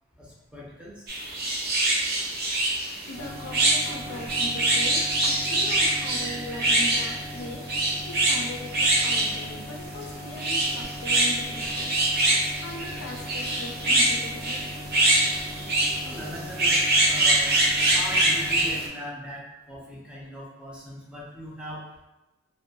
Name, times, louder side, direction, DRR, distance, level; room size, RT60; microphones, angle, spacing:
voice 1, 0.2-0.9 16.0-17.5 17.9-21.8, equal, 5° right, -6 dB, 0.5 m, -40 dB
sound 1, 1.1-18.9, right 1 dB, 50° right, 0.6 m, -24 dB
voice 2, 3.1-7.7 8.0-12.0 12.6-14.6, left 1 dB, 75° left, 1 dB, 0.4 m, -39 dB
sound 2, 3.1-18.8, left 1 dB, 30° left, 0.7 m, -40 dB
2.5 x 2.1 x 2.7 m, 1.0 s
head